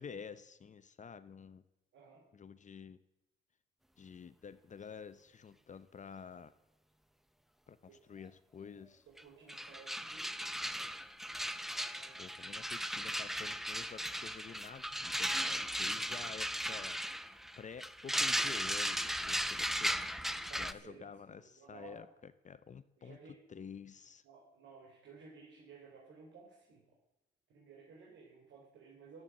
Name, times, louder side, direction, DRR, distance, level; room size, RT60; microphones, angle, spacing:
voice 1, 0.0-1.6 2.3-3.0 4.0-6.5 7.7-7.8 8.1-9.0 12.2-17.0 17.6-19.9 20.5-23.2 23.5-24.2, left 6 dB, 40° left, 14 dB, 0.8 m, -50 dB
voice 2, 1.9-2.2 7.9-8.0 9.1-10.4 11.6-12.3 16.0-16.3 20.3-21.9 23.0-23.4 24.2-26.9 27.5-29.2, right 5 dB, 75° right, -3 dB, 4.2 m, -57 dB
sound 1, 9.2-9.3 9.5-20.7, equal, ahead, 0.7 m, -37 dB
13.0 x 12.5 x 7.6 m, 0.93 s
cardioid pair, 90°, 20 cm